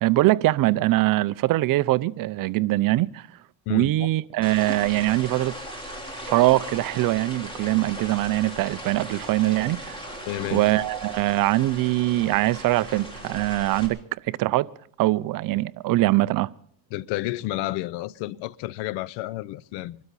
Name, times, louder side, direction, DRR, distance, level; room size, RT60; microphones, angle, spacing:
voice 1, 0.0-3.3 3.7-5.6 6.3-10.0 10.5-14.0 14.3-14.7 15.0-16.5, right 17 dB, 50° right, 0.6 m, -22 dB
sound 1, 4.4-13.9, equal, 10° left, 3.7 m, -38 dB
voice 2, 10.3-10.9 16.9-20.0, left 16 dB, 65° left, 0.7 m, -31 dB
25.0 x 12.5 x 4.1 m
cardioid pair, 125°, 45 cm